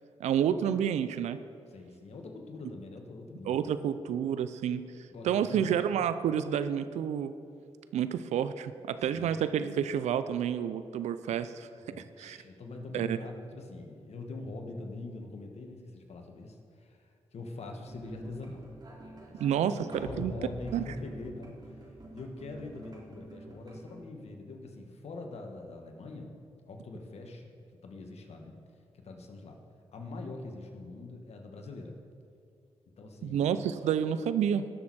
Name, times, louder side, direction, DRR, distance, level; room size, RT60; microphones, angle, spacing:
voice 1, 0.2-1.4 3.5-4.8 5.2-7.3 7.9-11.7 12.2-12.4 12.9-13.2 19.4-20.3 20.7-20.8 33.2-34.7, right 9 dB, 85° right, 13 dB, 0.4 m, -29 dB
voice 2, 1.7-3.9 5.1-5.7 9.1-9.4 11.9-18.7 19.3-19.6 20.0-21.8 22.1-26.4 26.7-27.5 27.8-28.6 29.0-29.6 29.9-32.0 33.0-33.5, left 2 dB, 70° left, 3 dB, 1.6 m, -43 dB
sound 1, 17.8-24.0, right 1 dB, 40° right, 3.2 m, -47 dB
19.0 x 6.4 x 4.3 m, 2.5 s
cardioid pair, 55°, 11 cm